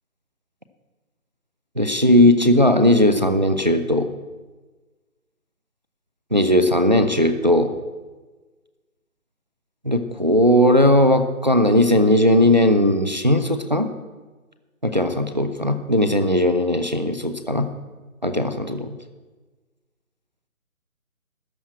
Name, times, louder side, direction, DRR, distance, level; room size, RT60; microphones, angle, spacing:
voice 1, 1.8-4.1 6.3-7.7 9.8-13.9 14.8-17.7 18.2-18.9, left 1 dB, 30° right, 9 dB, 0.5 m, -18 dB
13.0 x 6.1 x 8.7 m, 1.3 s
hypercardioid pair, 170°, 44 cm